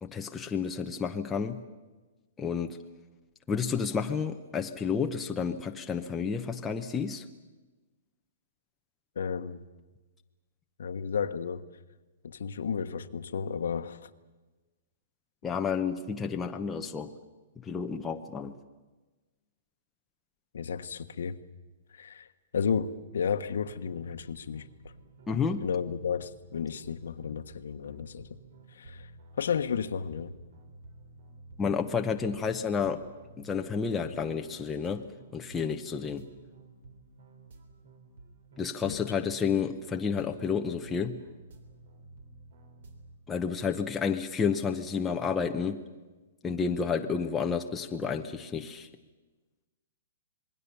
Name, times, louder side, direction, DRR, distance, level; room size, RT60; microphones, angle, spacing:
voice 1, 0.0-1.6 2.4-2.8 3.5-7.3 15.4-17.1 17.6-18.6 25.3-25.7 31.6-33.0 33.4-36.3 38.6-41.2 43.3-45.9 46.4-48.9, left 6 dB, 10° left, 3 dB, 0.9 m, -31 dB
voice 2, 9.1-9.6 10.8-11.6 12.2-14.1 20.5-21.4 21.9-22.3 22.5-24.6 25.6-28.3 28.7-29.1 29.4-30.3 38.8-39.1, left 6 dB, 75° left, 11 dB, 1.3 m, -32 dB
sound 1, 23.4-43.2, right 2 dB, 60° right, 3.5 m, -52 dB
27.0 x 21.0 x 7.0 m, 1.2 s
hypercardioid pair, 165°, 0 cm